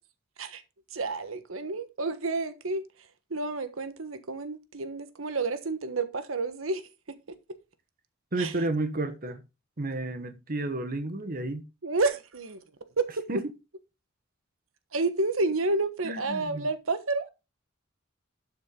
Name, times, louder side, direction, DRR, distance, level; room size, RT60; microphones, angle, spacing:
voice 1, 0.9-6.9 7.3-7.6 8.4-8.6 11.8-12.6 13.0-13.4 14.9-17.3, right 3 dB, 85° right, 1.3 m, -30 dB
voice 2, 8.3-9.4 9.8-11.6 13.3-13.4 16.0-16.7, right 2 dB, 45° right, 1.2 m, -31 dB
12.0 x 7.3 x 3.8 m
head